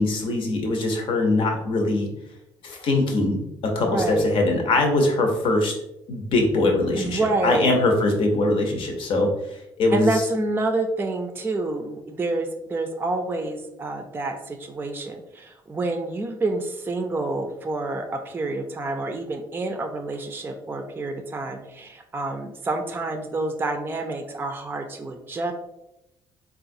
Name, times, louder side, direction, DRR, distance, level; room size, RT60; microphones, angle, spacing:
voice 1, 0.0-2.1 2.6-5.7 6.1-10.2, left 2 dB, 70° left, 2 dB, 0.8 m, -22 dB
voice 2, 3.9-4.4 7.0-7.7 9.9-25.5, right 2 dB, 25° right, 5 dB, 0.4 m, -28 dB
3.8 x 2.4 x 2.6 m, 0.86 s
cardioid pair, 90°, 9 cm